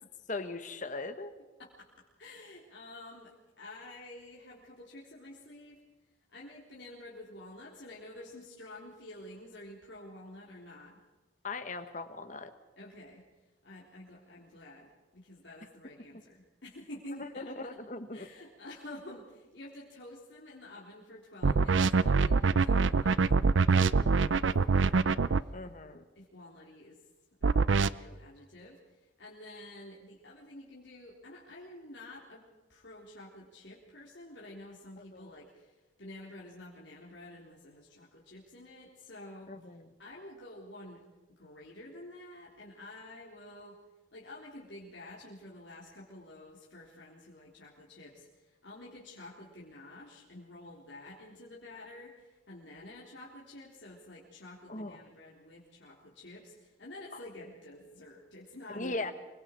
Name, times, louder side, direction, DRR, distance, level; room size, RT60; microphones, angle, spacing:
voice 1, 0.3-1.3 11.4-12.5 16.1-16.2 17.2-18.3 25.5-26.0 35.0-35.3 39.5-39.9 54.7-55.1 57.1-57.2 58.7-59.1, left 2 dB, 40° left, 9 dB, 1.4 m, -39 dB
voice 2, 2.2-5.8 6.3-11.0 12.8-13.2 13.6-17.5 18.1-25.2 26.2-27.0 27.4-28.8 29.2-35.7 36.0-39.5 40.0-41.0 41.4-43.8 44.1-59.1, left 1 dB, 65° left, -5 dB, 3.5 m, -49 dB
sound 1, 21.4-25.4 27.4-27.9, right 4 dB, 75° right, 0.6 m, -24 dB
25.5 x 23.0 x 4.5 m, 1.2 s
head